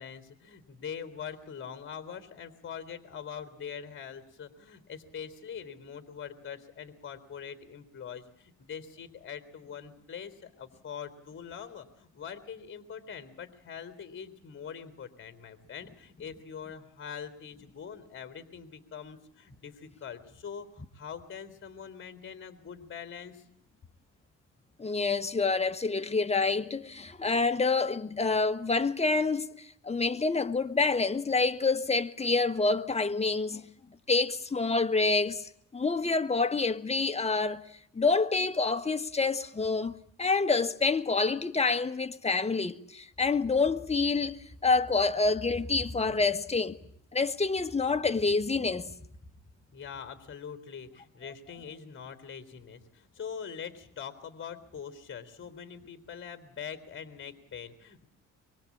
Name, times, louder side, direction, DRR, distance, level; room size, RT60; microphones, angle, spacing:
voice 1, 0.0-23.4 49.7-58.1, left 7 dB, 40° left, 3.7 m, -43 dB
voice 2, 24.8-33.6 34.1-37.6 37.9-44.4 44.6-46.8 47.1-48.9, left 4 dB, 20° left, 1.5 m, -27 dB
24.5 x 23.5 x 8.6 m
cardioid pair, 90°, 30 cm